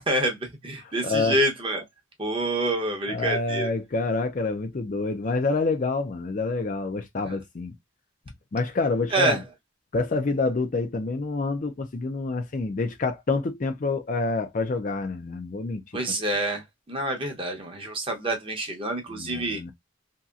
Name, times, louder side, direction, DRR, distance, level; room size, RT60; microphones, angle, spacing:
voice 1, 0.1-1.8 2.2-3.7 7.2-7.4 9.1-9.4 15.9-19.6, right 1 dB, 25° right, 0.8 m, -27 dB
voice 2, 1.0-1.4 3.1-7.7 8.5-9.4 9.9-15.8 19.1-19.7, left 3 dB, 40° left, 0.4 m, -27 dB
2.9 x 2.8 x 2.4 m
head